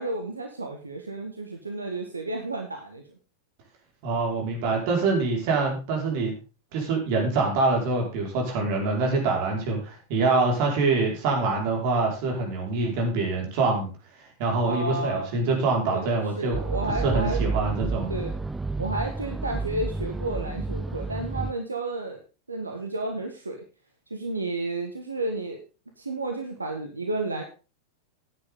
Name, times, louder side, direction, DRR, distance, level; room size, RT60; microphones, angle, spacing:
voice 1, 0.0-3.0 14.7-15.3 15.9-17.4 18.1-18.3 18.8-22.2 22.5-23.6 24.1-25.6 26.0-27.4, right 2 dB, 80° right, 3 dB, 1.7 m, -32 dB
voice 2, 4.0-6.3 6.7-13.9 14.2-16.6 17.0-18.1, right 3 dB, 45° right, 0 dB, 5.1 m, -25 dB
sound 1, 16.5-21.5, right 3 dB, 10° right, 0.6 m, -30 dB
14.5 x 10.0 x 3.8 m, 0.33 s
figure-of-eight pair, 90°, 0 cm